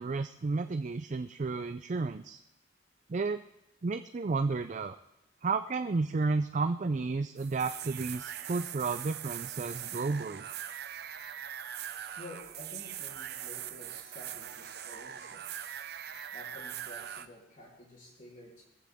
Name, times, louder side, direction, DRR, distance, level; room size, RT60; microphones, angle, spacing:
voice 1, 0.0-2.4 3.1-3.4 3.8-5.0 5.4-10.5, right 3 dB, 40° right, 9 dB, 0.4 m, -32 dB
sound 1, 7.4-17.2, right 10 dB, 60° right, 0.8 m, -41 dB
voice 2, 12.2-15.8 16.3-18.6, left 1 dB, 45° left, -3 dB, 3.4 m, -51 dB
21.0 x 15.0 x 3.6 m, 0.93 s
head